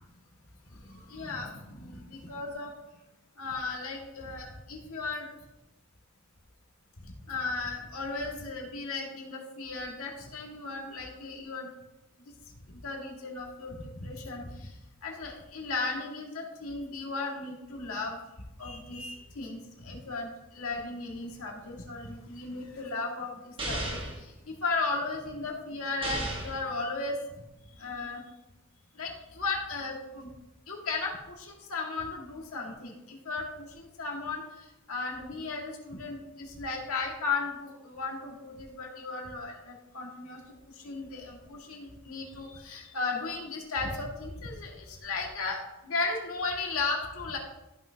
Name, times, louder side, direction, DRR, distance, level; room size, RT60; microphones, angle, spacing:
voice 1, 0.7-2.7 3.4-5.3 7.0-11.7 12.6-14.7 15.0-18.2 18.6-27.2 27.7-28.2 29.0-30.3 30.7-40.4 40.8-47.4, left 3 dB, 75° left, -1 dB, 1.9 m, -36 dB
sound 1, 23.6-24.2 26.0-26.6, right 1 dB, 25° right, 1.5 m, -33 dB
14.0 x 6.0 x 2.8 m, 0.96 s
head